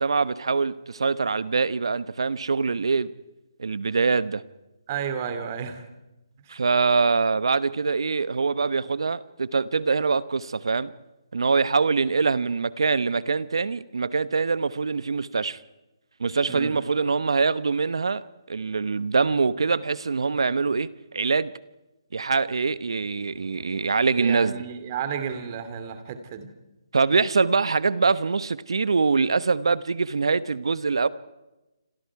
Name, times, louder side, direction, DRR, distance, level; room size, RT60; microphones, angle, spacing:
voice 1, 0.0-3.1 3.6-4.4 6.5-10.9 11.3-15.6 16.2-21.5 22.1-24.6 26.9-31.1, right 4 dB, 75° right, 1.0 m, -24 dB
voice 2, 4.9-5.8 16.5-16.8 24.2-26.5, right 7 dB, 35° right, 2.8 m, -32 dB
28.5 x 26.5 x 4.8 m
figure-of-eight pair, 150°, 3 cm